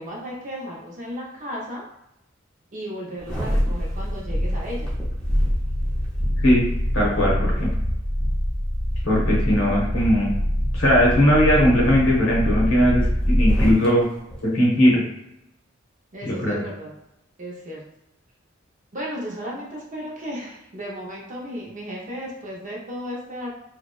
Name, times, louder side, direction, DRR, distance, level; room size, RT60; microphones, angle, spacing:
voice 1, 0.0-1.8 2.7-4.9 16.1-16.9 17.4-17.8 18.9-23.5, equal, 40° right, -3 dB, 0.6 m, -34 dB
sound 1, 3.2-13.9 14.3-14.4, equal, 5° left, 0.6 m, -24 dB
voice 2, 6.9-7.7 9.0-10.4 10.7-14.0 14.4-15.0 16.2-16.6, equal, 80° left, -3 dB, 0.8 m, -19 dB
2.7 x 2.1 x 2.3 m, 0.85 s
head